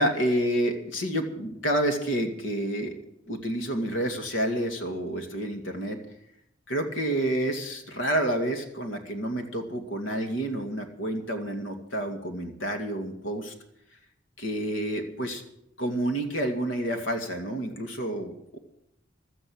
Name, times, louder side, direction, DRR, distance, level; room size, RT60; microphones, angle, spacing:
voice 1, 0.0-2.9 3.3-6.0 6.7-13.5 14.4-15.4 15.8-18.6, right 1 dB, 75° left, 5 dB, 2.3 m, -29 dB
16.0 x 12.5 x 6.4 m, 0.79 s
head